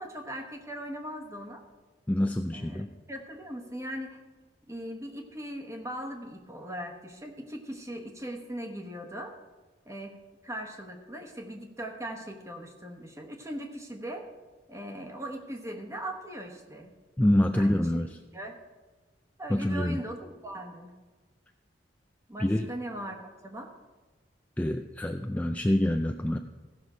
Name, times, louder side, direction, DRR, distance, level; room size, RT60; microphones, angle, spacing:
voice 1, 0.0-1.6 2.5-4.2 4.7-9.3 9.9-10.2 10.4-14.3 14.7-16.9 17.5-18.0 18.3-18.6 19.4-20.9 22.3-23.7, right 1 dB, 15° right, 3 dB, 1.1 m, -39 dB
voice 2, 2.1-2.9 17.2-18.1 19.5-20.0 22.4-22.7 24.6-26.4, left 1 dB, 10° left, 5 dB, 0.3 m, -26 dB
15.5 x 6.1 x 5.0 m, 1.3 s
head